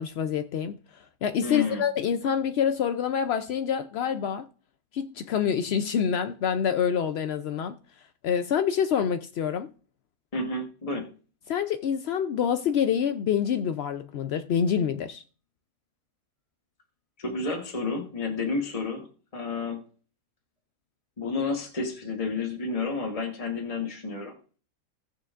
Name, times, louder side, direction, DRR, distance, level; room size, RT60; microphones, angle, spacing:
voice 1, 0.0-4.5 4.9-7.7 8.2-9.7 11.5-15.2, left 8 dB, 75° left, 0.5 m, -27 dB
voice 2, 1.4-1.8 10.3-11.1 17.2-19.1 19.3-19.8 21.2-24.3, left 3 dB, 25° left, 1.1 m, -30 dB
18.0 x 6.7 x 2.5 m
omnidirectional pair, 1.7 m